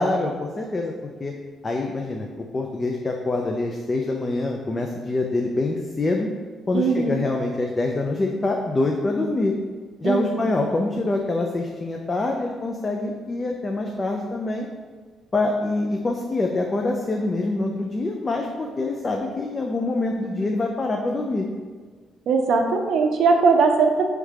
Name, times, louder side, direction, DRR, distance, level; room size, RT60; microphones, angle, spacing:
voice 1, 0.0-1.3 1.6-6.3 6.7-9.5 10.0-14.7 15.3-21.5, left 2 dB, 30° left, 1 dB, 0.4 m, -25 dB
voice 2, 6.7-7.2 10.0-10.6 22.3-24.1, right 4 dB, 70° right, 3 dB, 0.4 m, -20 dB
3.3 x 3.2 x 4.8 m, 1.5 s
cardioid pair, 90°, 0 cm